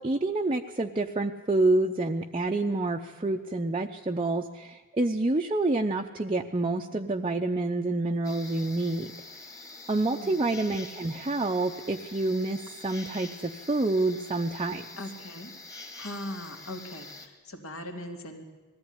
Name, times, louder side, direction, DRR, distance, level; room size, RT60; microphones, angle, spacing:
voice 1, 0.0-9.1 9.9-14.8, right 2 dB, 25° right, 2 dB, 0.7 m, -28 dB
sound 1, 8.2-17.3, left 2 dB, 15° left, 1.8 m, -46 dB
voice 2, 10.1-10.5 15.0-15.5 15.9-18.4, left 1 dB, 70° left, 3 dB, 2.9 m, -40 dB
20.5 x 14.5 x 9.8 m, 1.3 s
head